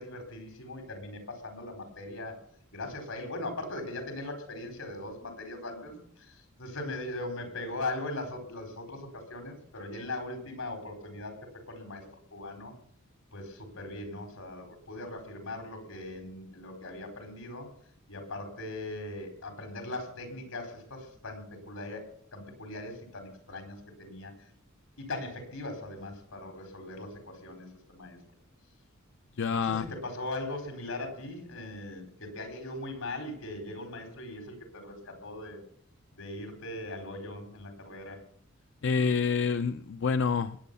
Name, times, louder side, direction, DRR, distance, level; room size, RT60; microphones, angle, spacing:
voice 1, 0.0-2.4 2.7-12.7 13.3-17.7 18.1-22.0 22.3-24.4 25.0-28.2 29.5-35.6 36.1-38.2, left 2 dB, 85° left, 6 dB, 4.6 m, -40 dB
voice 2, 29.4-29.9 38.8-40.6, left 5 dB, 60° left, 11 dB, 0.5 m, -27 dB
20.0 x 9.2 x 6.9 m, 0.63 s
head